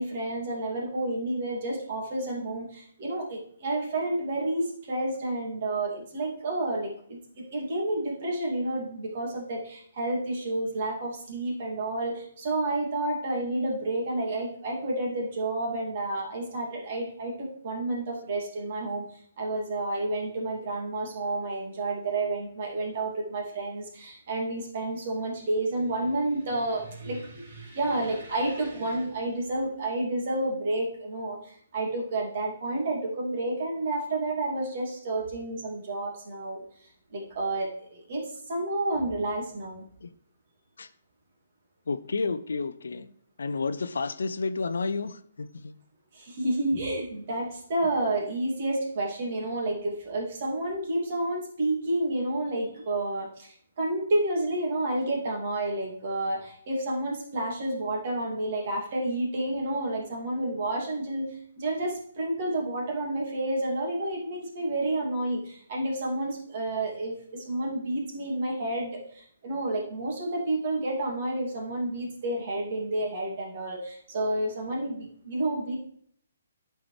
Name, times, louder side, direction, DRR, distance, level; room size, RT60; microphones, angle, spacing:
voice 1, 0.0-19.0 19.4-36.6 37.1-39.9 46.1-75.8, right 2 dB, 50° right, -1 dB, 2.6 m, -30 dB
voice 2, 41.9-43.1 43.4-45.7, left 4 dB, 70° left, 12 dB, 0.6 m, -31 dB
12.0 x 4.6 x 3.3 m, 0.63 s
figure-of-eight pair, 135°, 0 cm